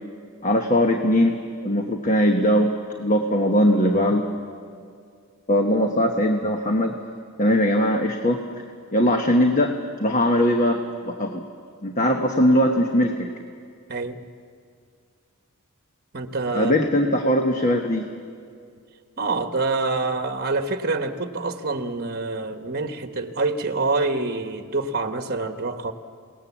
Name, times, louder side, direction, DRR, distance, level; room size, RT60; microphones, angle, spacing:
voice 1, 0.4-1.4 1.6-2.7 3.0-4.2 5.5-6.9 7.4-8.4 8.9-9.7 10.0-11.4 11.8-13.3 16.5-18.1, equal, 35° left, 3 dB, 1.2 m, -20 dB
voice 2, 13.9-14.2 16.1-16.8 19.2-25.9, right 3 dB, 45° right, 7 dB, 1.2 m, -26 dB
27.5 x 18.5 x 7.3 m, 2.2 s
head